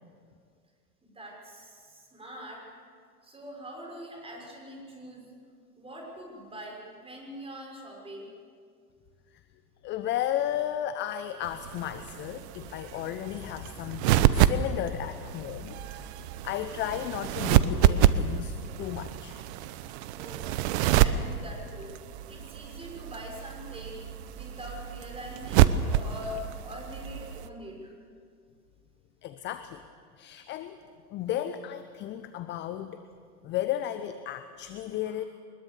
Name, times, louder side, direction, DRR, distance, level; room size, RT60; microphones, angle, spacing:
voice 1, 1.0-2.6 3.2-5.2 5.8-8.3 20.1-20.5 21.0-21.9 22.3-24.0 24.3-27.9 35.0-35.1, equal, 10° right, 0 dB, 6.3 m, -43 dB
voice 2, 9.8-16.1 16.4-19.4 29.2-29.8 30.2-30.8 31.1-33.0 33.4-35.3, left 11 dB, 25° left, 11 dB, 0.8 m, -34 dB
sound 1, 11.4-27.5, right 11 dB, 45° right, 1.0 m, -28 dB
23.0 x 21.0 x 7.0 m, 2.1 s
hypercardioid pair, 105°, 48 cm